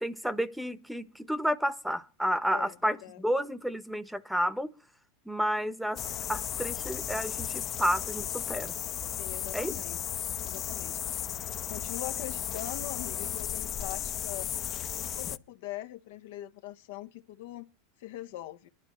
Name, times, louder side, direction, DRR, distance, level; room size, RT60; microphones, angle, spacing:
voice 1, 0.0-4.7 5.2-6.0 6.3-8.8 9.5-9.8, equal, ahead, 1.0 m, -31 dB
voice 2, 2.5-3.2 9.2-10.0 10.4-11.3 11.7-14.5 14.9-17.7 18.0-18.7, left 14 dB, 75° left, 0.9 m, -42 dB
sound 1, 6.0-15.4, left 10 dB, 40° left, 0.7 m, -35 dB
24.0 x 12.0 x 3.1 m
hypercardioid pair, 105°, 0 cm